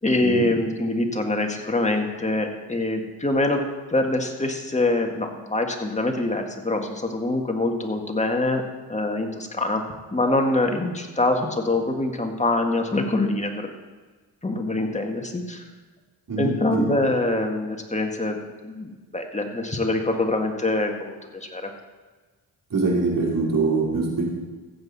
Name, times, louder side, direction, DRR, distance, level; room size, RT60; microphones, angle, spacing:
voice 1, 0.0-3.6 3.9-8.6 8.9-9.8 10.1-13.7 14.4-15.6 16.4-18.4 18.6-21.7, left 2 dB, 15° left, 3 dB, 1.8 m, -24 dB
voice 2, 16.3-16.8 22.7-24.2, right 3 dB, 55° right, -3 dB, 3.7 m, -23 dB
15.0 x 7.9 x 4.2 m, 1.4 s
cardioid pair, 65°, 40 cm